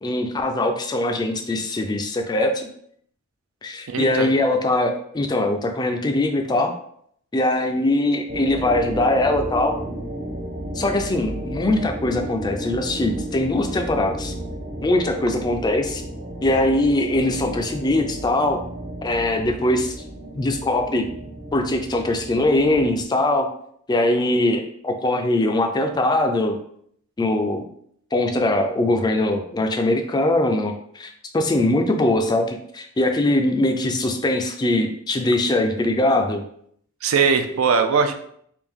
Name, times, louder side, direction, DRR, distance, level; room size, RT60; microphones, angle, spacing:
voice 1, 0.0-2.7 3.6-6.7 7.3-9.8 10.8-14.3 14.8-16.0 16.4-18.6 19.0-20.0 20.3-21.1 21.5-23.5 23.9-26.6 27.2-27.7 28.1-36.4, left 1 dB, 20° left, 6 dB, 0.3 m, -21 dB
voice 2, 3.9-4.3 37.0-38.1, right 5 dB, 80° right, 7 dB, 0.4 m, -20 dB
sound 1, 8.3-23.0, right 1 dB, 60° right, 1.3 m, -33 dB
3.5 x 2.6 x 3.5 m, 0.67 s
head